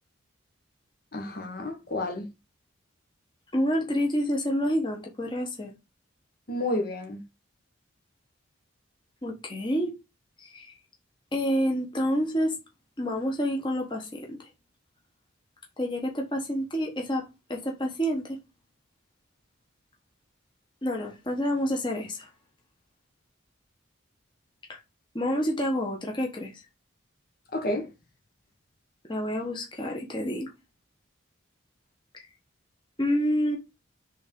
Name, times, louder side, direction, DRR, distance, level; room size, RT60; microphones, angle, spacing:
voice 1, 1.1-2.3 6.5-7.2 27.5-27.9, left 1 dB, 45° left, 1.2 m, -30 dB
voice 2, 3.5-5.7 9.2-9.9 10.4-10.7 11.3-12.5 13.0-14.5 15.8-17.2 17.5-18.4 20.8-22.3 24.7-24.8 25.1-26.6 29.1-30.5 32.1-32.3 33.0-33.6, equal, 25° left, 1.2 m, -28 dB
5.1 x 3.6 x 5.3 m
head